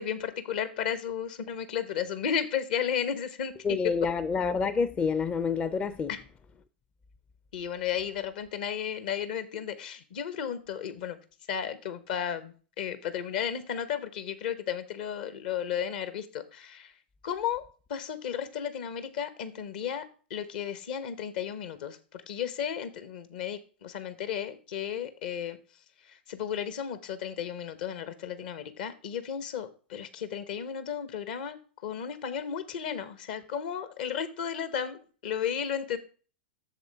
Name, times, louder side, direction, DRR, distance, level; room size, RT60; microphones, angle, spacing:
voice 1, 0.0-3.5 6.1-6.2 7.5-11.2 11.5-16.9 17.2-17.6 17.9-20.0 20.3-22.0 22.3-25.6 26.3-31.6 31.8-36.0, left 8 dB, 60° left, 1.1 m, -34 dB
voice 2, 3.6-6.1, left 5 dB, 20° left, 0.5 m, -28 dB
7.9 x 6.7 x 3.4 m
figure-of-eight pair, 95°, 6 cm